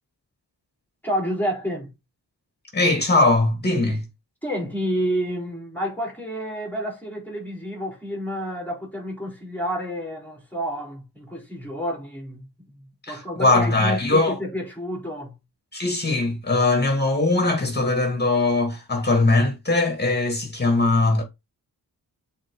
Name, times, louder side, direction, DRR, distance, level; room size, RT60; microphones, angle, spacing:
voice 1, 1.0-1.9 4.4-15.4, equal, 5° left, 4.2 m, -30 dB
voice 2, 2.7-4.0 13.1-14.4 15.7-21.2, left 2 dB, 25° left, 2.7 m, -20 dB
7.5 x 4.3 x 3.9 m
wide cardioid pair, 115°, 39 cm